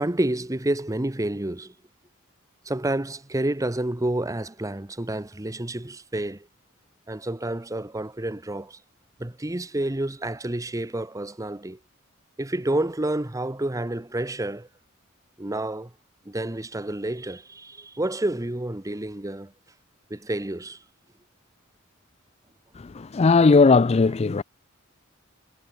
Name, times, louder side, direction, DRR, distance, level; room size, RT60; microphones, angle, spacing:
voice 1, 0.0-1.7 2.6-6.5 7.1-8.8 9.2-11.8 12.4-14.7 15.4-15.9 16.2-19.5 20.1-20.8, right 1 dB, 15° right, 0.9 m, -29 dB
voice 2, 22.8-24.4, left 4 dB, 30° left, 0.4 m, -18 dB
head